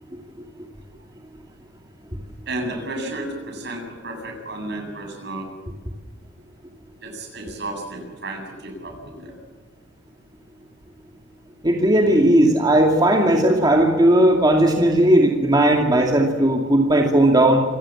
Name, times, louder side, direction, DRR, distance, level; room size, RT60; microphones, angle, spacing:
voice 1, 2.5-5.5 7.0-9.3, right 2 dB, 65° right, 3 dB, 7.8 m, -32 dB
voice 2, 11.6-17.6, right 1 dB, 25° right, 1 dB, 2.5 m, -16 dB
26.5 x 18.0 x 7.4 m, 1.4 s
head